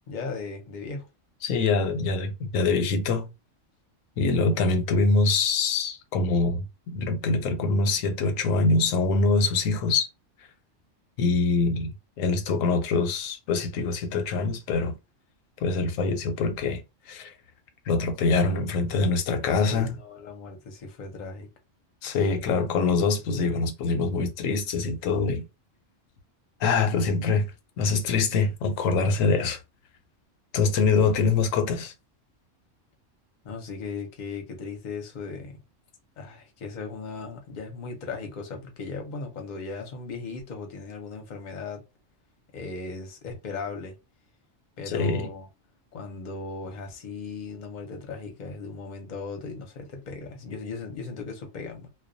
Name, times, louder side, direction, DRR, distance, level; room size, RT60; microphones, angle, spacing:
voice 1, 0.1-1.1 19.5-21.5 31.0-31.1 33.4-35.6 36.2-41.8 42.5-44.0 44.8-45.5 45.9-51.9, left 4 dB, 45° left, 0.7 m, -37 dB
voice 2, 1.4-3.3 4.2-10.1 11.2-11.9 12.2-14.9 15.6-16.8 17.1-17.3 17.9-20.0 22.0-25.4 26.6-27.5 27.8-29.6 30.5-31.9 44.9-45.3, left 4 dB, 85° left, 1.0 m, -24 dB
2.2 x 2.2 x 2.5 m
omnidirectional pair, 1.3 m